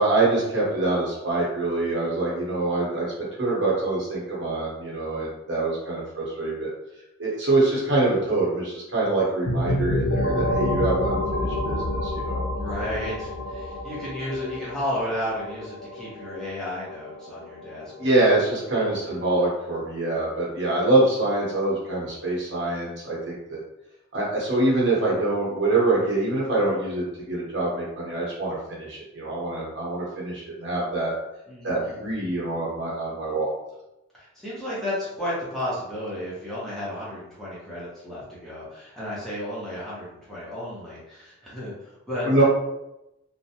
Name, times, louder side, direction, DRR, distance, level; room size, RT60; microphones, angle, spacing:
voice 1, 0.0-3.1 3.4-6.7 7.2-12.4 18.0-23.6 24.1-31.1 31.6-33.5 42.2-42.4, right 2 dB, 60° right, -5 dB, 0.9 m, -25 dB
sound 1, 9.4-19.0, left 1 dB, 80° left, 0.5 m, -29 dB
voice 2, 12.5-18.1 19.0-19.5 31.5-32.0 34.1-42.4, left 1 dB, ahead, -9 dB, 0.7 m, -33 dB
2.4 x 2.1 x 2.7 m, 0.90 s
head